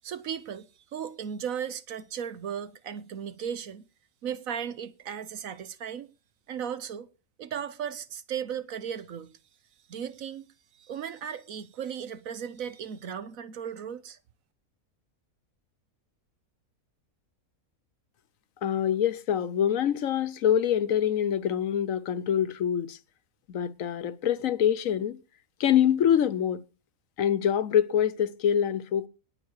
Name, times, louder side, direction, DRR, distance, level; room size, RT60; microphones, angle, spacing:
voice 1, 0.0-0.7 0.9-3.8 4.2-6.1 6.5-7.1 7.4-9.3 9.9-10.5 10.7-14.2, right 8 dB, 70° right, 1.3 m, -36 dB
voice 2, 18.6-23.0 23.5-25.2 25.6-26.6 27.2-29.1, left 9 dB, 70° left, 1.1 m, -25 dB
19.0 x 7.2 x 4.7 m
omnidirectional pair, 1.5 m